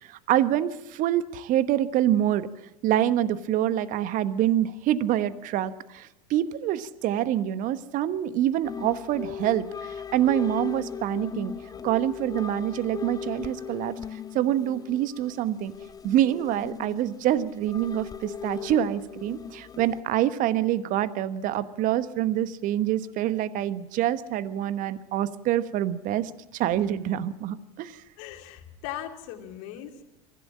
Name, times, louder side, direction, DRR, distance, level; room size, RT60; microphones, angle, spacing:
voice 1, 0.0-2.5 2.8-11.5 11.8-15.7 16.0-28.0, right 12 dB, 45° right, 15 dB, 1.1 m, -26 dB
sound 1, 8.6-20.0, left 7 dB, 20° left, 0.8 m, -38 dB
voice 2, 28.2-30.0, left 11 dB, 55° left, 5 dB, 2.7 m, -39 dB
24.0 x 15.0 x 8.7 m, 0.95 s
figure-of-eight pair, 80°, 20 cm